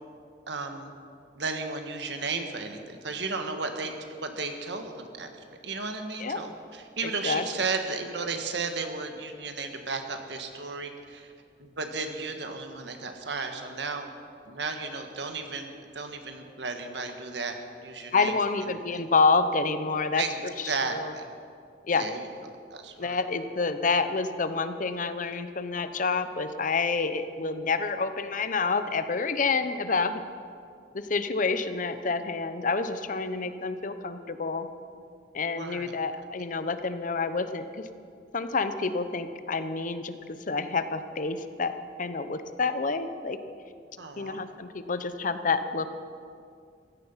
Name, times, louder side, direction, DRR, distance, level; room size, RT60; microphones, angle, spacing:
voice 1, 0.5-0.9 1.3-3.9 4.2-5.4 5.6-11.3 11.6-14.1 14.4-17.6 17.8-18.4 18.7-19.0 20.2-20.4 20.6-21.2 21.9-22.3 22.7-23.2 35.5-35.9 44.0-44.4, right 4 dB, 70° right, 6 dB, 1.5 m, -34 dB
voice 2, 7.0-7.4 18.1-20.5 20.9-21.1 21.9-22.1 23.0-30.2 30.9-34.7 35.3-37.9 38.3-41.7 42.0-43.4 44.2-45.9, left 4 dB, 45° left, 10 dB, 0.8 m, -28 dB
16.0 x 13.5 x 5.7 m, 2.3 s
head